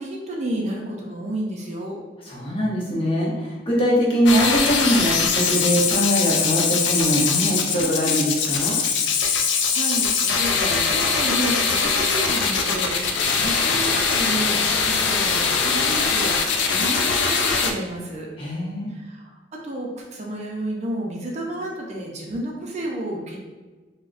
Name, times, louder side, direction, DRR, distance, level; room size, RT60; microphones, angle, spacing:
voice 1, 0.0-2.0 9.4-18.3 18.9-23.4, right 1 dB, 40° right, -1 dB, 0.4 m, -31 dB
voice 2, 2.3-8.8 18.4-18.9, equal, 30° left, -5 dB, 0.8 m, -22 dB
sound 1, 4.3-17.7, left 5 dB, 75° left, 0.4 m, -22 dB
3.7 x 2.1 x 2.4 m, 1.3 s
head